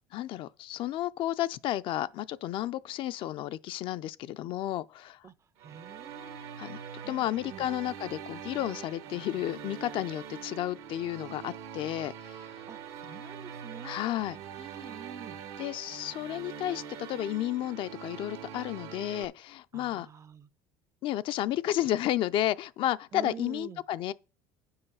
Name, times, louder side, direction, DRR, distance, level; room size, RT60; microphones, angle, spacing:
voice 1, 0.1-5.3 6.6-6.8 7.1-12.6 13.8-14.4 14.8-14.9 15.6-20.1 21.0-24.1, left 13 dB, 55° left, 0.4 m, -32 dB
voice 2, 5.6-6.4 7.0-7.7 12.6-14.1 14.6-15.4 19.7-20.5 23.1-23.8, right 8 dB, 30° right, 0.5 m, -46 dB
sound 1, 5.6-19.3, right 7 dB, 75° right, 1.1 m, -44 dB
8.9 x 5.6 x 5.4 m
supercardioid pair, 105°, 10 cm